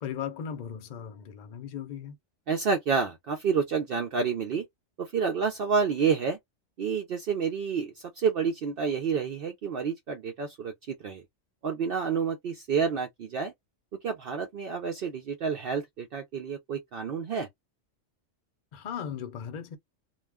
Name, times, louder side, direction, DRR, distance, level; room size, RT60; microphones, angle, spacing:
voice 1, 0.0-2.2 18.7-19.8, left 8 dB, 45° left, 0.6 m, -37 dB
voice 2, 2.5-4.7 5.0-6.4 6.8-11.2 11.6-13.5 14.0-17.5, right 6 dB, 60° right, 0.6 m, -29 dB
2.3 x 2.1 x 3.4 m
omnidirectional pair, 1.3 m